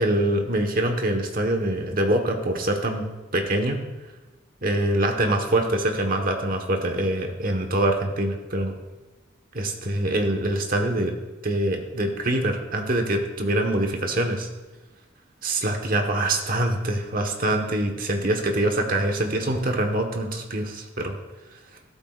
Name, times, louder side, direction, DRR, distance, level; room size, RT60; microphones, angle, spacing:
voice 1, 0.0-3.1 3.3-3.8 4.6-8.7 9.5-11.1 11.4-14.5 15.4-21.2, right 1 dB, 45° right, 4 dB, 1.3 m, -24 dB
13.5 x 12.5 x 2.5 m, 1.2 s
head